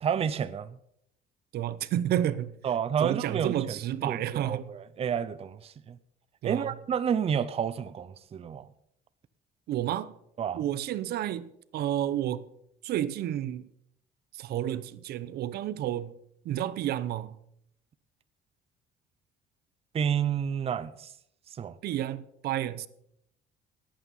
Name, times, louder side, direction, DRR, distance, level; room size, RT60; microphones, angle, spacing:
voice 1, 0.0-0.7 2.6-3.5 4.0-6.0 6.4-8.7 10.4-10.6 19.9-21.1 21.6-21.7, right 8 dB, 35° right, 0.6 m, -30 dB
voice 2, 1.5-2.6 3.0-4.7 6.4-6.7 9.7-10.1 10.5-12.5 12.8-13.7 14.3-16.2 16.4-17.4 21.8-22.9, right 12 dB, 70° right, 0.7 m, -31 dB
16.5 x 9.0 x 5.5 m
cardioid pair, 110°, 17 cm